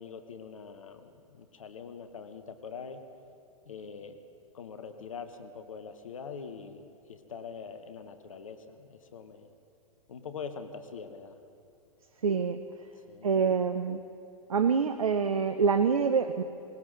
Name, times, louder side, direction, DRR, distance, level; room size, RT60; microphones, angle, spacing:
voice 1, 0.0-3.0 3.6-4.2 4.5-9.5 10.1-11.4 13.1-13.4, left 6 dB, 65° left, 8 dB, 1.2 m, -43 dB
voice 2, 12.2-12.6 13.2-14.0 14.5-16.4, right 6 dB, 75° right, 8 dB, 0.7 m, -26 dB
19.5 x 19.0 x 3.8 m, 2.7 s
figure-of-eight pair, 105°, 18 cm